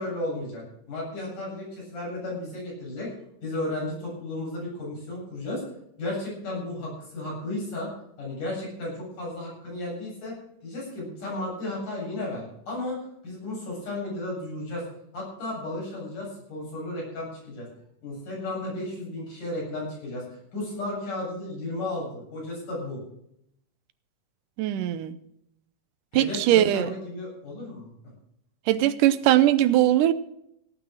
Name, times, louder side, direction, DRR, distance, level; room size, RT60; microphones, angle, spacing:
voice 1, 0.0-3.1 3.4-5.6 6.0-7.9 8.2-10.3 10.6-14.8 15.1-17.7 18.0-23.0 26.1-27.9, left 1 dB, 80° left, -4 dB, 9.8 m, -34 dB
voice 2, 24.6-25.2 26.1-26.9 28.7-30.1, right 13 dB, 85° right, 14 dB, 2.4 m, -20 dB
17.5 x 9.0 x 6.3 m, 0.76 s
omnidirectional pair, 3.6 m